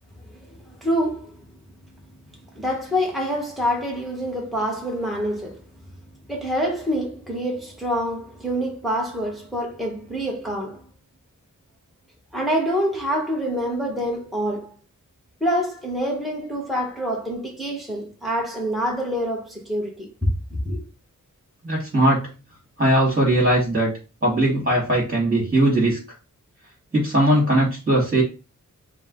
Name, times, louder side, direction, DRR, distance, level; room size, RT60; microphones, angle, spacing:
voice 1, 0.8-1.3 2.5-5.6 6.3-10.8 12.3-14.7 15.4-20.1 20.6-20.8, equal, ahead, 1.2 m, -26 dB
voice 2, 21.6-22.3 22.8-23.9 24.2-26.0 26.9-28.2, right 1 dB, 30° right, 1.9 m, -19 dB
4.7 x 2.2 x 3.7 m
wide cardioid pair, 90°, 32 cm